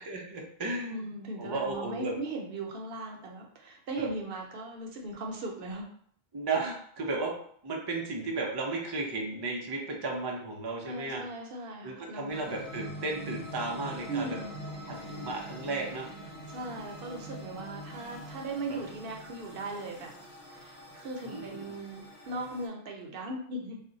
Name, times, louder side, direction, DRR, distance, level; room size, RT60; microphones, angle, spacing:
voice 1, 0.0-1.0 1.4-2.1 4.0-4.1 6.3-7.3 7.6-11.2 11.8-14.4 14.9-16.1 18.7-18.8 21.2-21.6, right 3 dB, 35° right, -1 dB, 0.4 m, -34 dB
voice 2, 0.9-5.9 10.8-12.4 14.1-14.6 16.5-20.1 20.5-23.8, right 2 dB, 65° right, 1 dB, 0.8 m, -38 dB
sound 1, 12.3-22.7, equal, 90° left, 1.0 m, -44 dB
2.4 x 2.1 x 3.8 m, 0.62 s
omnidirectional pair, 1.1 m